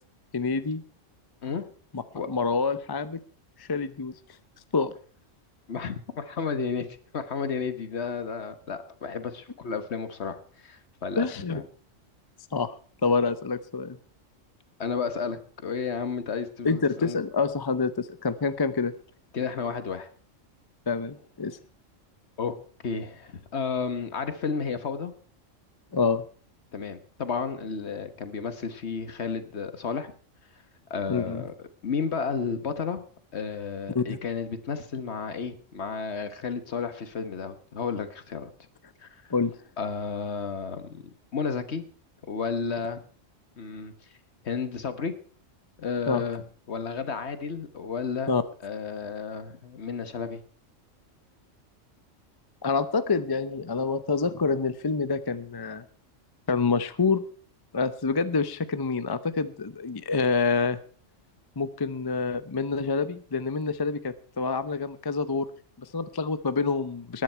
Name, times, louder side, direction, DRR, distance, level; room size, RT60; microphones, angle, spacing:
voice 1, 0.3-0.8 1.9-3.2 3.6-4.1 4.7-4.9 11.2-11.6 12.5-12.7 13.0-14.0 16.6-18.9 20.9-21.6 25.9-26.3 31.1-31.4 33.9-34.2 39.3-39.6 46.1-46.2 48.3-48.4 52.6-55.8 56.5-57.2 57.7-60.8 61.6-65.5 65.8-67.2, left 4 dB, 25° left, 13 dB, 0.5 m, -27 dB
voice 2, 5.7-6.9 7.1-11.6 14.8-17.2 19.3-20.1 22.4-22.5 22.8-25.1 26.7-30.1 30.9-31.5 31.8-33.0 33.3-38.5 39.0-39.2 39.8-41.0 41.3-41.8 42.3-43.0 43.6-43.9 44.4-45.1 45.8-48.3 48.6-50.4, left 5 dB, 60° left, 10 dB, 1.5 m, -32 dB
19.0 x 10.5 x 4.5 m, 0.43 s
omnidirectional pair, 1.3 m